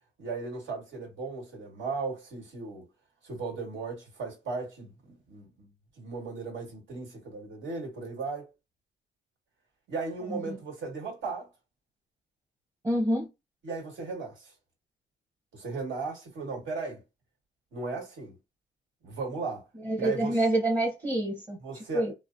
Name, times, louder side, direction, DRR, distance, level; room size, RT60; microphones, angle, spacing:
voice 1, 0.2-2.9 3.2-5.7 6.0-8.5 9.9-11.5 13.6-14.5 15.5-17.0 17.7-18.3 19.0-19.7 20.0-20.4 21.6-22.1, right 4 dB, 70° right, 1.7 m, -36 dB
voice 2, 12.8-13.3 19.8-21.6 21.9-22.1, right 1 dB, 20° right, 1.0 m, -27 dB
3.0 x 2.1 x 2.6 m
cardioid pair, 90°, 20 cm